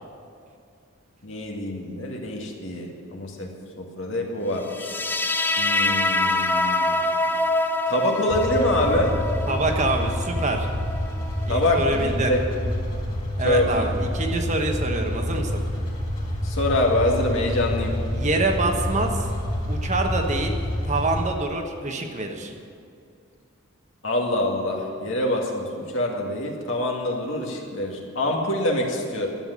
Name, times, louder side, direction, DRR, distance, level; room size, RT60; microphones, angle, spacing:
voice 1, 1.2-3.5 3.8-4.9 5.6-7.0 7.9-9.1 11.5-12.4 13.4-13.9 16.4-18.0 24.0-29.3, left 1 dB, 60° left, 0 dB, 2.2 m, -25 dB
sound 1, 4.7-11.8, left 2 dB, 10° left, 0.4 m, -25 dB
sound 2, 8.3-21.2, equal, 25° left, 3.1 m, -28 dB
voice 2, 9.5-10.7 11.5-12.3 13.4-15.6 18.1-19.3 19.7-20.6 20.9-22.5, right 2 dB, 35° right, 3 dB, 1.2 m, -26 dB
12.5 x 8.1 x 9.8 m, 2.4 s
head